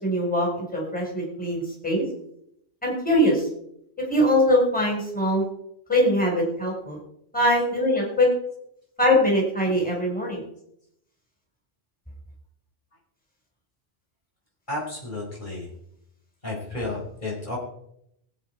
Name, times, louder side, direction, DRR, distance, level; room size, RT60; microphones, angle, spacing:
voice 1, 0.0-2.0 2.8-3.5 4.0-5.4 5.9-7.0 7.3-8.3 9.0-10.4, equal, 5° left, -2 dB, 4.6 m, -22 dB
voice 2, 14.7-15.7 16.4-17.6, left 2 dB, 45° left, -3 dB, 4.8 m, -32 dB
22.0 x 8.7 x 4.7 m, 0.75 s
omnidirectional pair, 1.1 m